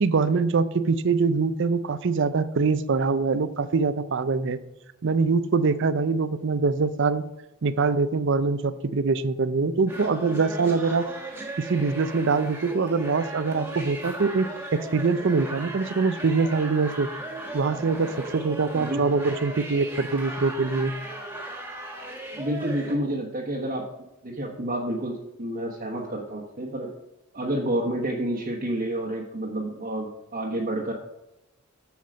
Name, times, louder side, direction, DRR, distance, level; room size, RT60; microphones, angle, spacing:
voice 1, 0.0-4.6 5.0-7.2 7.6-11.1 11.6-17.1 17.5-20.9, right 4 dB, 60° right, 14 dB, 0.5 m, -24 dB
sound 1, 9.9-23.0, right 2 dB, 10° right, 1.6 m, -37 dB
voice 2, 22.3-23.9 24.2-26.9 27.3-30.9, right 1 dB, 45° right, -2 dB, 1.1 m, -29 dB
7.5 x 7.2 x 5.1 m, 0.91 s
head